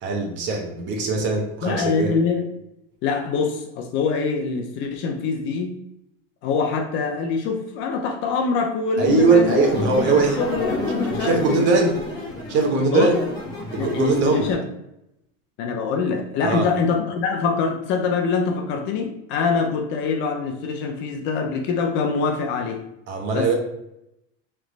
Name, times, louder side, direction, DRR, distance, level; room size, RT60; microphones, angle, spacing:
voice 1, 0.0-2.1 9.0-10.4 11.2-12.0 12.5-13.2 13.7-14.5 16.4-16.7 23.1-23.6, right 3 dB, 40° right, 2 dB, 0.8 m, -20 dB
voice 2, 1.6-2.5 3.0-5.8 6.4-9.6 10.0-11.6 12.8-13.1 13.8-14.6 15.6-22.8 23.3-23.5, left 5 dB, 40° left, 4 dB, 0.6 m, -24 dB
sound 1, 9.0-14.5, left 1 dB, 15° left, 1.2 m, -29 dB
3.3 x 3.0 x 3.9 m, 0.83 s
supercardioid pair, 160°, 29 cm